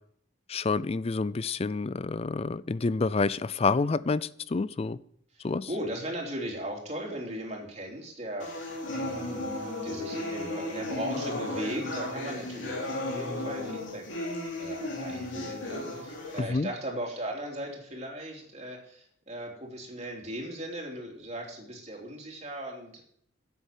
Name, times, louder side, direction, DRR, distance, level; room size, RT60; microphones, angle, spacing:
voice 1, 0.5-5.0 5.4-5.7 16.5-16.7, left 4 dB, 30° left, 18 dB, 0.4 m, -28 dB
voice 2, 5.3-14.1 14.6-23.0, right 1 dB, 35° right, 0 dB, 3.1 m, -38 dB
sound 1, 8.4-16.4, left 1 dB, 65° left, 3.2 m, -35 dB
10.0 x 8.2 x 7.3 m, 0.67 s
head